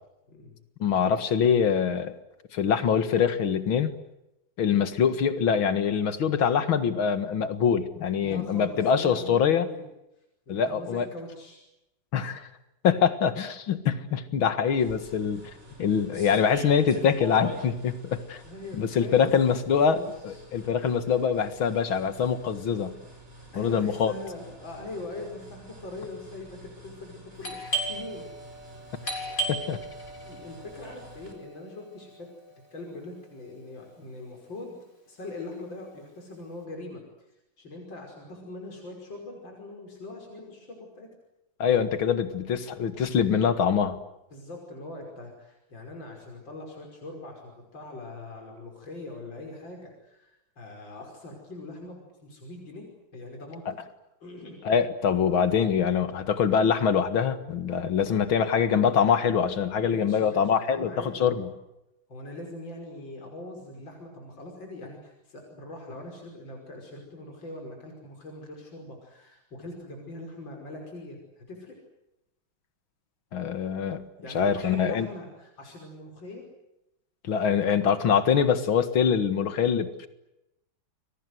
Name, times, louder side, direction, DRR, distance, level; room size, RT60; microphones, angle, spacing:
voice 1, 0.8-2.2 2.5-3.9 4.6-9.7 10.5-11.1 12.1-12.5 12.8-15.4 15.8-18.4 18.7-23.0 23.6-24.1 29.5-29.8 41.6-44.0 54.6-61.5 73.3-74.1 74.3-75.1 77.2-80.1, left 7 dB, 85° left, 11 dB, 2.5 m, -24 dB
voice 2, 8.2-9.9 10.5-11.6 18.4-19.6 19.9-20.4 23.5-28.3 30.2-32.3 32.7-34.7 35.1-37.3 37.6-41.1 44.3-52.9 53.1-53.6 54.2-54.6 59.7-61.5 62.1-71.8 74.2-76.4, left 2 dB, 70° left, 1 dB, 6.3 m, -42 dB
sound 1, 14.8-31.3, right 1 dB, 35° right, 5.3 m, -46 dB
Doorbell, 27.4-32.9, right 2 dB, 40° left, 5.9 m, -36 dB
29.5 x 23.0 x 8.0 m, 0.88 s
omnidirectional pair, 2.1 m